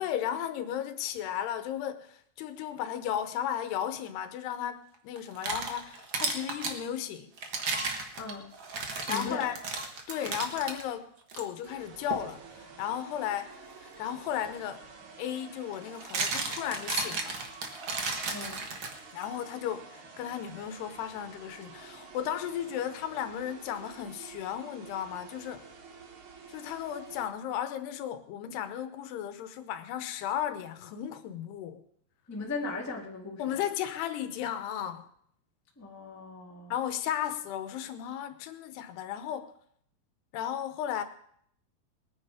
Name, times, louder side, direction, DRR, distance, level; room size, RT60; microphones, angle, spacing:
voice 1, 0.0-7.3 9.1-9.6 10.1-13.5 13.8-14.8 15.2-17.4 19.1-25.6 26.5-31.8 33.4-35.1 36.7-39.5 40.3-41.0, left 10 dB, 90° left, 3.1 m, -35 dB
sound 1, 5.2-6.8 7.4-10.8 11.3-11.4 12.1-12.3 14.4-14.5 15.7-19.2, right 4 dB, 65° right, 1.2 m, -34 dB
voice 2, 8.2-8.5 9.0-9.5 18.3-18.6 32.3-33.6 35.8-36.7, left 3 dB, 10° left, 0.8 m, -38 dB
sound 2, 11.6-27.3, right 4 dB, 90° right, 1.1 m, -50 dB
20.5 x 9.7 x 4.9 m
omnidirectional pair, 4.6 m